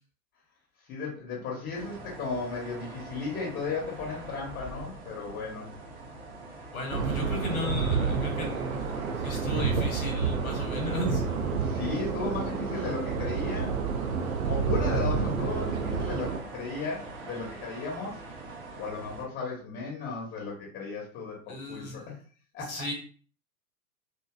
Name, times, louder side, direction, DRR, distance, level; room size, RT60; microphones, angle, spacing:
voice 1, 0.9-5.7 11.5-13.7 14.5-18.2 18.8-22.2 22.5-22.8, left 4 dB, 25° left, -2 dB, 0.8 m, -35 dB
sound 1, 1.7-19.2, right 2 dB, 20° right, 0.5 m, -44 dB
voice 2, 6.7-11.2 21.5-22.1 22.6-22.9, left 1 dB, 70° left, 2 dB, 1.0 m, -35 dB
sound 2, 6.9-16.4, right 5 dB, 75° right, 0.5 m, -29 dB
2.7 x 2.2 x 2.2 m, 0.40 s
figure-of-eight pair, 95°, 43 cm